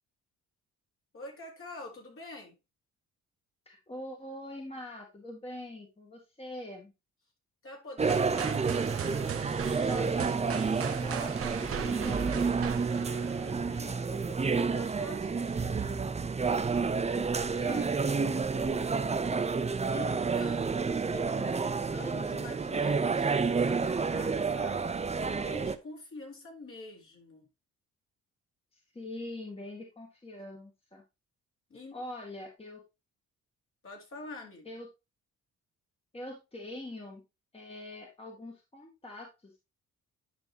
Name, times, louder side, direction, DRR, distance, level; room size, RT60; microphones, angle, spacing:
voice 1, 1.1-2.6 7.6-8.7 13.3-16.0 19.9-20.9 21.1-27.5 31.7-32.0 33.8-34.7, left 2 dB, 45° left, 4.1 m, -46 dB
voice 2, 3.7-6.9 9.9-12.6 17.1-19.1 28.7-31.0 31.9-32.9 34.7-34.9 36.1-37.2 37.5-39.6, left 1 dB, 20° left, 2.2 m, -44 dB
sound 1, 8.0-25.8, right 5 dB, 20° right, 0.8 m, -30 dB
sound 2, 8.1-14.0, right 8 dB, 50° right, 1.0 m, -39 dB
10.5 x 5.7 x 2.9 m
cardioid pair, 90°, 30 cm